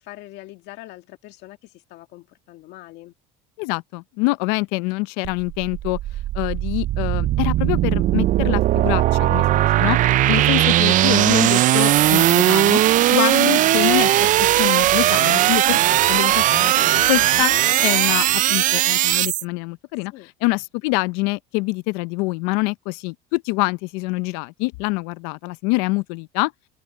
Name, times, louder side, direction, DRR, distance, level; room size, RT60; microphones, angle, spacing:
voice 1, 0.0-3.1 10.2-10.5 20.1-20.3, left 17 dB, 65° left, 1.9 m, -43 dB
voice 2, 3.6-6.0 6.3-12.8 13.1-17.5 17.8-26.5, left 25 dB, 85° left, 0.6 m, -25 dB
sound 1, 5.2-19.4, right 14 dB, 45° right, 0.4 m, -18 dB
supercardioid pair, 115°, 19 cm